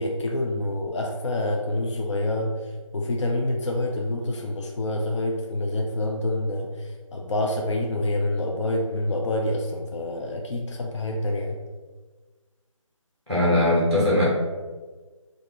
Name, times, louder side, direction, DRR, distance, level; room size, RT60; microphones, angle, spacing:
voice 1, 0.0-11.6, left 1 dB, 60° left, 2 dB, 0.4 m, -27 dB
voice 2, 13.3-14.2, left 1 dB, 5° left, -7 dB, 0.7 m, -20 dB
3.4 x 2.5 x 3.3 m, 1.3 s
figure-of-eight pair, 160°, 17 cm